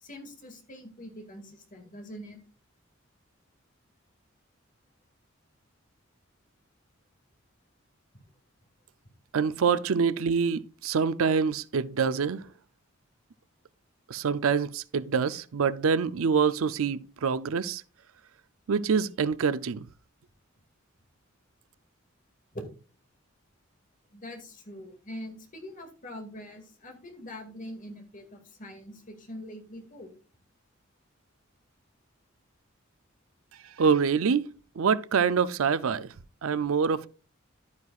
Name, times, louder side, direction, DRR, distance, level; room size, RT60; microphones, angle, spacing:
voice 1, 0.0-2.4 22.5-22.6 24.1-30.1, left 1 dB, 40° left, 2.2 m, -43 dB
voice 2, 9.3-12.4 14.1-17.8 18.7-19.9 33.8-34.5 34.8-36.1 36.4-37.1, right 6 dB, 80° right, 0.5 m, -25 dB
11.5 x 9.5 x 2.4 m
head